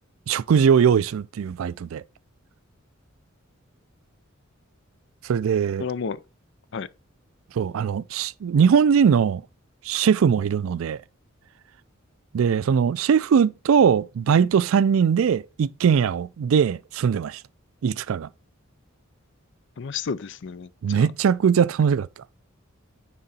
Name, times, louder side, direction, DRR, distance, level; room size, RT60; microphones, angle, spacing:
voice 1, 0.3-2.0 5.2-5.9 7.6-9.4 9.9-11.0 12.3-17.4 17.8-18.3 20.8-22.1, right 7 dB, 75° right, 0.3 m, -20 dB
voice 2, 5.8-6.2 6.7-6.9 19.8-21.1, left 5 dB, 60° left, 0.5 m, -31 dB
9.7 x 3.7 x 4.2 m
head